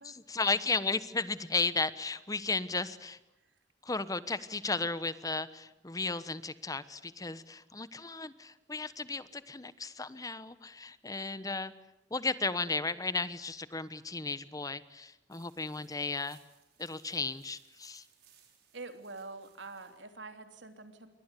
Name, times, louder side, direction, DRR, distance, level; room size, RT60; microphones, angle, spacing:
voice 1, 0.0-3.2 3.8-11.7 12.1-16.4 16.8-18.0, left 3 dB, 20° left, 15 dB, 1.0 m, -34 dB
sound 1, 15.3-20.0, right 9 dB, 60° right, 6.0 m, -65 dB
voice 2, 18.7-21.1, right 3 dB, 80° right, 7 dB, 3.2 m, -45 dB
28.5 x 23.5 x 8.3 m, 0.87 s
head